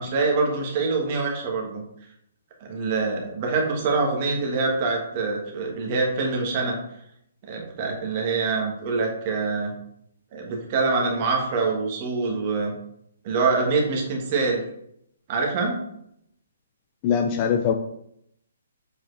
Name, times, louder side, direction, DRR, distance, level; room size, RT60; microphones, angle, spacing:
voice 1, 0.0-1.8 2.7-6.8 7.5-9.7 10.3-12.7 13.2-14.6 15.3-15.8, right 4 dB, 30° right, 0 dB, 1.4 m, -25 dB
voice 2, 17.0-17.7, left 7 dB, 20° left, 6 dB, 0.4 m, -22 dB
7.0 x 4.7 x 3.3 m, 0.74 s
hypercardioid pair, 175°, 0 cm